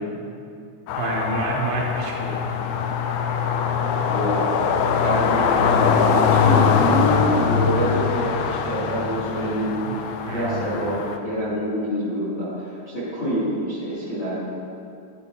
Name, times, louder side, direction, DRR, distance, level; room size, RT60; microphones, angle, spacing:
sound 1, 0.9-11.2, left 6 dB, 85° left, 2.2 m, -22 dB
voice 1, 0.9-2.6 5.5-5.7 9.9-10.0 10.3-10.6, right 2 dB, 80° right, -1 dB, 2.5 m, -29 dB
voice 2, 4.0-4.4 5.0-14.3, equal, 50° left, -11 dB, 1.5 m, -26 dB
12.0 x 5.8 x 2.8 m, 2.4 s
omnidirectional pair, 4.9 m